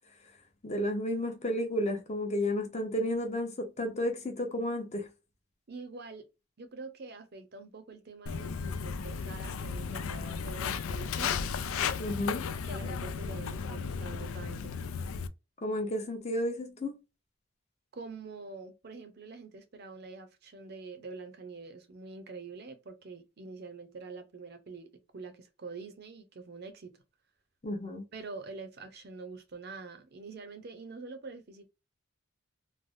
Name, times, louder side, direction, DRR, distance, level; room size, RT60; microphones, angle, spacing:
voice 1, 0.6-5.1 12.0-12.5 15.6-17.0 27.6-28.0, left 1 dB, 35° left, 0.7 m, -32 dB
voice 2, 5.7-6.3 6.6-11.4 12.5-14.8 17.9-27.0 28.1-31.7, right 4 dB, 50° right, 0.6 m, -45 dB
Walk footsteps, 8.3-15.3, left 6 dB, 85° left, 0.4 m, -34 dB
3.2 x 2.1 x 2.5 m
head